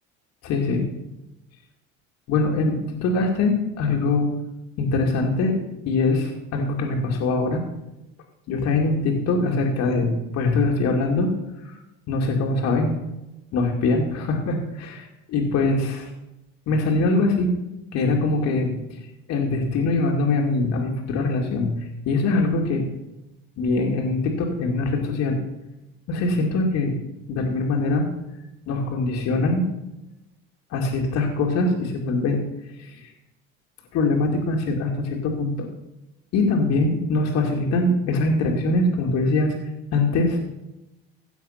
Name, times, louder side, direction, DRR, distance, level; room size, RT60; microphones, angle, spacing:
voice 1, 0.4-0.9 2.3-4.3 4.8-5.6 5.9-7.6 8.5-11.8 12.1-12.9 13.5-16.1 16.7-17.5 17.9-19.0 19.3-22.8 23.6-25.4 26.1-27.0 27.3-28.1 28.7-29.6 30.7-32.4 32.8-33.1 33.9-35.7 36.3-40.4, left 3 dB, 60° left, 1 dB, 2.4 m, -23 dB
16.5 x 7.0 x 5.8 m, 0.96 s
supercardioid pair, 110°, 30 cm